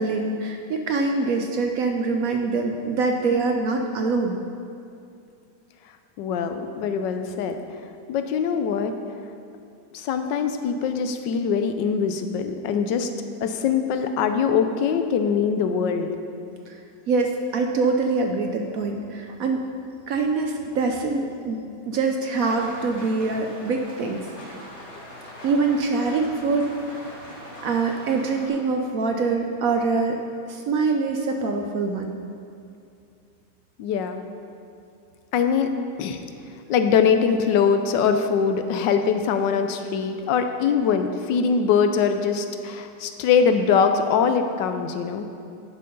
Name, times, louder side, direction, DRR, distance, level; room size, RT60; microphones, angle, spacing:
voice 1, 0.0-4.4 16.7-16.8 17.1-19.7 20.1-24.3 25.4-26.7 27.6-30.2 30.5-32.2, right 4 dB, 65° right, 4 dB, 0.9 m, -24 dB
voice 2, 6.2-7.6 8.1-8.9 9.9-13.1 13.4-16.1 33.8-34.2 35.3-35.7 36.0-36.2 36.7-45.3, left 6 dB, 80° left, 7 dB, 1.3 m, -22 dB
sound 1, 6.3-8.9, left 2 dB, 85° right, 2.6 m, -45 dB
Rain, 22.4-28.5, left 1 dB, 50° left, 2.1 m, -41 dB
10.5 x 5.7 x 5.3 m, 2.5 s
omnidirectional pair, 1.9 m